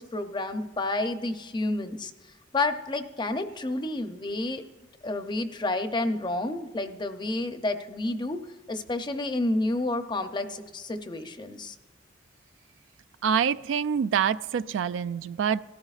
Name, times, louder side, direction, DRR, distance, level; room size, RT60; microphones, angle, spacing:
voice 1, 0.0-2.1 2.5-4.6 5.0-11.8, left 2 dB, 25° left, 0.6 m, -30 dB
voice 2, 13.2-15.6, right 7 dB, 80° right, 0.3 m, -26 dB
18.0 x 13.0 x 2.4 m
head